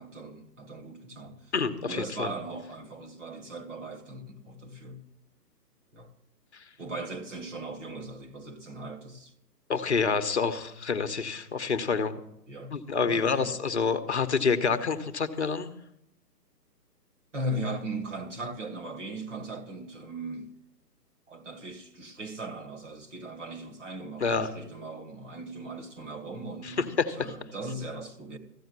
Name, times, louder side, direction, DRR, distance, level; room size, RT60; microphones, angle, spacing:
voice 1, 0.0-1.5 1.8-5.0 5.9-6.1 6.8-9.3 12.5-12.8 13.0-13.6 17.3-20.5 21.3-28.4, right 2 dB, 50° right, 2.0 m, -38 dB
voice 2, 1.5-2.3 9.7-12.2 12.7-15.7 24.2-24.5 26.8-27.1, left 5 dB, 45° left, 0.9 m, -27 dB
14.5 x 7.0 x 9.5 m
hypercardioid pair, 175°, 48 cm